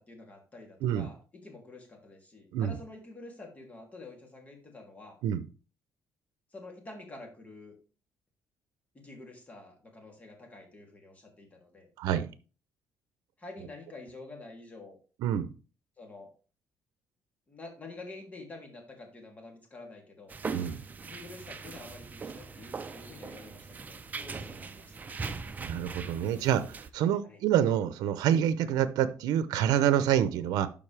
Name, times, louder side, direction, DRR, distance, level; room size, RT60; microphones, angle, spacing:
voice 1, 0.0-5.2 6.5-7.8 8.9-11.9 13.4-15.0 16.0-16.3 17.5-20.4 21.0-25.1 27.2-27.4, left 2 dB, 25° left, 2 dB, 2.8 m, -48 dB
sound 1, 20.3-26.9, right 4 dB, 25° right, 0.7 m, -40 dB
voice 2, 25.6-30.7, right 10 dB, 90° right, 13 dB, 0.6 m, -27 dB
12.0 x 5.2 x 3.3 m, 0.36 s
cardioid pair, 125°, 6 cm